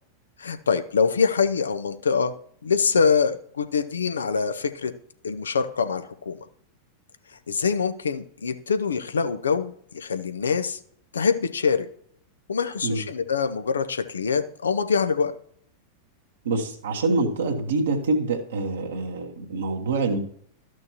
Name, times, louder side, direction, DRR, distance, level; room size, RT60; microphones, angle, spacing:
voice 1, 0.4-2.3 2.6-4.9 5.2-6.4 7.5-10.8 11.1-11.9 12.5-15.3, left 5 dB, 70° left, 10 dB, 0.6 m, -24 dB
voice 2, 16.4-20.2, right 3 dB, 65° right, 2 dB, 1.2 m, -25 dB
13.0 x 6.2 x 2.9 m, 0.62 s
figure-of-eight pair, 90°, 0 cm